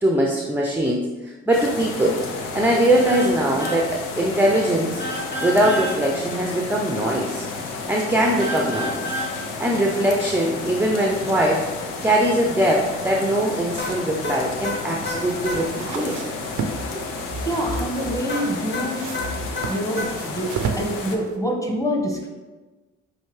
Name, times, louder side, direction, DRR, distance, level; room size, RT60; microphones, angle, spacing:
voice 1, 0.0-2.2 2.5-3.9 4.2-7.5 7.9-9.0 9.6-16.2 16.9-17.0, right 1 dB, 5° right, 0 dB, 0.6 m, -21 dB
sound 1, 1.5-21.2, left 3 dB, 90° left, 0.6 m, -32 dB
sound 2, 3.1-3.3 3.6-3.8 5.0-6.0 8.4-9.3 13.8-15.6 18.3-20.1, left 1 dB, 35° left, 1.1 m, -29 dB
sound 3, 14.9-21.4, right 5 dB, 70° right, 0.6 m, -34 dB
voice 2, 17.4-19.0 19.7-22.3, equal, 10° left, 0 dB, 1.3 m, -26 dB
5.7 x 2.7 x 3.2 m, 1.2 s
supercardioid pair, 45°, 31 cm